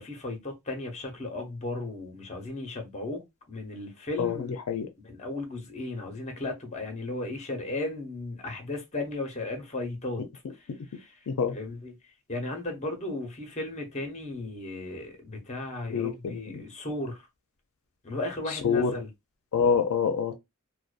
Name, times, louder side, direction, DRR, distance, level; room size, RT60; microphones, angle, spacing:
voice 1, 0.0-4.5 5.0-10.2 11.5-11.9 12.3-17.2 18.0-19.1, left 2 dB, 35° left, 0.8 m, -35 dB
voice 2, 4.2-4.9 10.7-10.8 11.3-11.6 15.9-16.6 18.5-19.0 19.5-20.4, left 6 dB, 85° left, 0.4 m, -27 dB
2.5 x 2.2 x 2.4 m
head